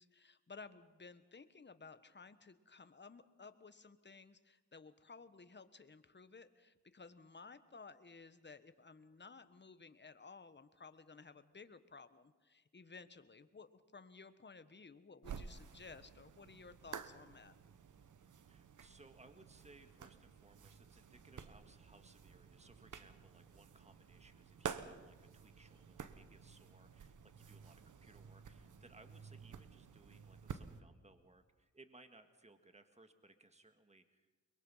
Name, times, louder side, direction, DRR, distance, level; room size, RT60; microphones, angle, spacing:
voice 1, 0.0-17.6, left 4 dB, 35° left, 12 dB, 1.3 m, -56 dB
sound 1, 15.2-30.8, right 7 dB, 75° right, 1.2 m, -51 dB
voice 2, 18.5-34.3, right 2 dB, 20° right, 8 dB, 1.8 m, -64 dB
22.5 x 22.0 x 5.7 m, 1.2 s
cardioid pair, 55°, 31 cm